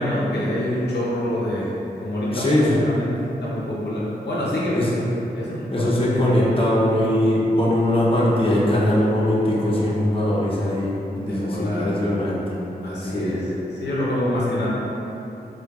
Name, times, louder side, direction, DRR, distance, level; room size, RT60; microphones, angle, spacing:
voice 1, 0.0-1.7 2.0-3.1 3.4-5.1 5.3-6.3 11.1-12.1 12.8-13.4 13.8-14.7, left 1 dB, 90° left, -6 dB, 0.6 m, -26 dB
voice 2, 2.3-2.8 4.7-5.0 5.7-10.9 11.2-12.4 13.0-13.4, left 1 dB, 35° left, -6 dB, 0.7 m, -21 dB
4.4 x 2.2 x 2.3 m, 2.9 s
wide cardioid pair, 55°, 17 cm